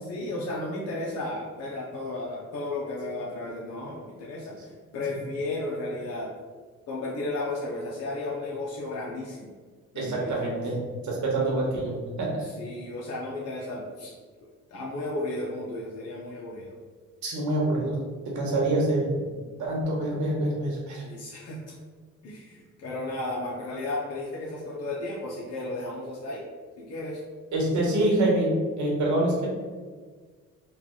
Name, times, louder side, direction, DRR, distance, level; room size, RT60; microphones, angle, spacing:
voice 1, 0.0-6.3 6.9-9.5 9.9-10.6 12.4-14.1 14.7-16.8 21.0-21.7 22.2-26.4 26.8-27.2, left 2 dB, 55° left, -5 dB, 0.7 m, -34 dB
voice 2, 9.9-10.8 11.0-12.4 17.2-18.0 18.3-19.1 19.6-21.0 27.5-29.5, right 1 dB, 70° right, -3 dB, 1.2 m, -26 dB
3.3 x 2.4 x 3.7 m, 1.5 s
cardioid pair, 90°, 30 cm